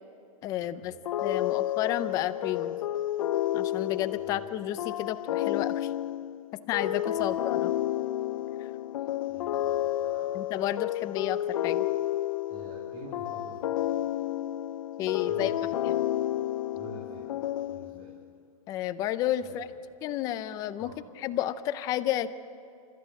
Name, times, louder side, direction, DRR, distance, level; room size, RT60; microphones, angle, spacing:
voice 1, 0.4-0.9 1.2-2.8 3.5-5.9 6.7-7.7 10.3-11.4 11.6-11.8 15.0-15.5 15.8-15.9 18.7-19.7 20.0-22.3, left 12 dB, 20° left, 13 dB, 0.5 m, -31 dB
sound 1, 1.0-18.2, left 13 dB, 65° left, 0.6 m, -31 dB
voice 2, 9.3-10.4 12.5-13.8 15.3-15.5 15.9-16.0 16.7-18.1 19.4-19.7 20.8-21.0, right 1 dB, 35° right, -3 dB, 3.5 m, -47 dB
30.0 x 14.0 x 7.7 m, 2.7 s
supercardioid pair, 170°, 19 cm